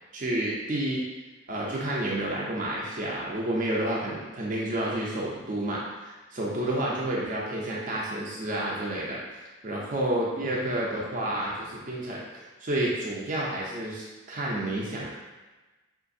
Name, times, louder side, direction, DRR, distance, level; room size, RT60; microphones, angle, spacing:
voice 1, 0.1-1.0 1.5-9.2 9.6-15.1, right 1 dB, 35° right, -4 dB, 0.5 m, -30 dB
4.7 x 2.5 x 2.6 m, 1.2 s
head